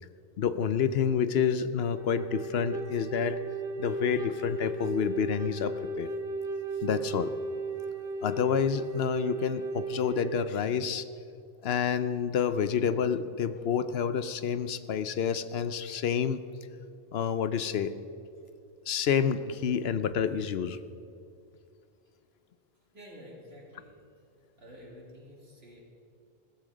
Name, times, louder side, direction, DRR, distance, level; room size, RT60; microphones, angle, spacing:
voice 1, 0.4-3.4 3.8-6.1 6.8-7.3 8.2-11.1 11.6-16.4 17.1-17.9 18.9-20.8, left 7 dB, 80° left, 12 dB, 0.9 m, -28 dB
Wind instrument woodwind instrument, 1.9-10.5, right 3 dB, 65° right, 1.3 m, -35 dB
voice 2, 22.9-24.0 24.6-25.8, equal, 80° right, -3 dB, 3.3 m, -49 dB
15.0 x 14.0 x 5.0 m, 2.5 s
omnidirectional pair, 1.0 m